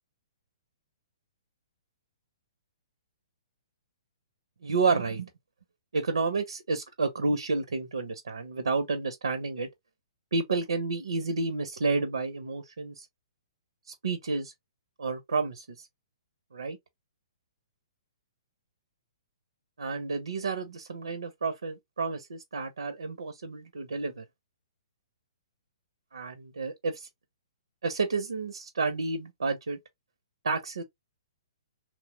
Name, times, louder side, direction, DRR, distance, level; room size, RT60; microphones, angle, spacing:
voice 1, 4.6-5.3 5.9-9.7 10.3-13.1 13.9-14.5 15.0-15.9 16.5-16.8 19.8-24.2 26.1-27.1 27.8-29.8 30.4-30.8, right 4 dB, 85° right, 0.5 m, -30 dB
3.0 x 2.0 x 2.8 m
hypercardioid pair, 135°, 3 cm